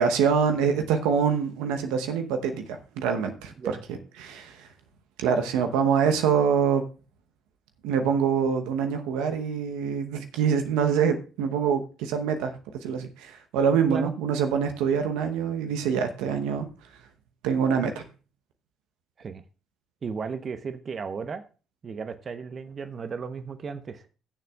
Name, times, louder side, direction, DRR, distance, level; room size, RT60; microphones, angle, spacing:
voice 1, 0.0-2.7 3.0-3.5 4.2-4.7 5.2-6.8 7.8-12.5 12.8-16.7 17.4-18.0, right 7 dB, 80° right, 6 dB, 0.9 m, -25 dB
voice 2, 20.0-21.4 21.8-24.0, right 5 dB, 45° right, 11 dB, 0.8 m, -34 dB
20.5 x 6.9 x 2.3 m, 0.34 s
hypercardioid pair, 55°, 0 cm